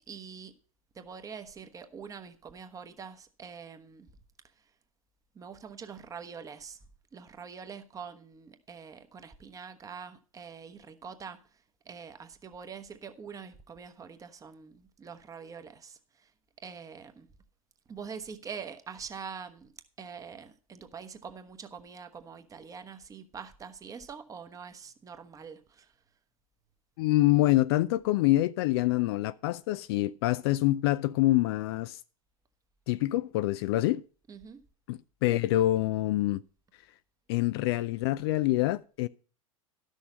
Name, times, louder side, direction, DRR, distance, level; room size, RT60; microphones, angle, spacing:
voice 1, 0.1-0.5 0.9-4.1 5.3-6.8 7.1-11.4 11.8-16.3 16.6-17.3 17.9-19.7 20.0-25.9 34.3-34.6, right 6 dB, 20° right, 1.1 m, -44 dB
voice 2, 27.0-32.0 32.9-34.0 34.9-36.4 37.3-39.1, left 16 dB, 45° left, 0.4 m, -26 dB
12.5 x 6.4 x 5.3 m
figure-of-eight pair, 85°, 18 cm